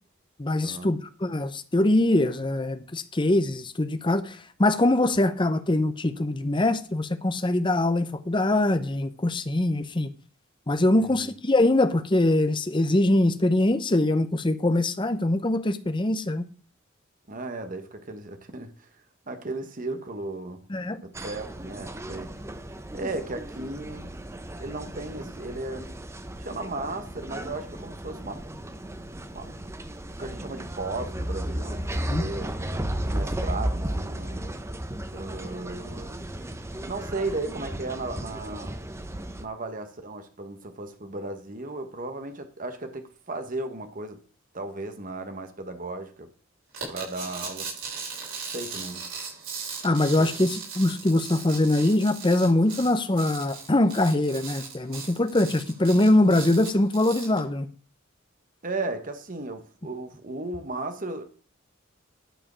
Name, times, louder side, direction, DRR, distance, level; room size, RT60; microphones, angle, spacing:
voice 1, 0.4-10.1 10.7-16.4 20.7-21.0 32.1-32.2 49.8-57.7, left 1 dB, 25° left, 0.8 m, -23 dB
voice 2, 10.9-11.3 17.3-18.9 19.3-20.6 21.0-22.4 22.9-24.1 24.6-26.0 26.4-28.4 29.3-29.7 30.2-32.5 33.0-34.4 35.1-36.2 36.8-38.8 39.4-44.2 44.5-46.3 46.9-47.7 48.5-49.1 50.2-50.5 58.6-61.2, right 2 dB, 40° right, 1.2 m, -35 dB
sound 1, 21.1-39.4, right 1 dB, 15° right, 0.7 m, -34 dB
sound 2, 46.7-57.4, right 5 dB, 85° right, 6.0 m, -38 dB
11.5 x 4.9 x 6.3 m
head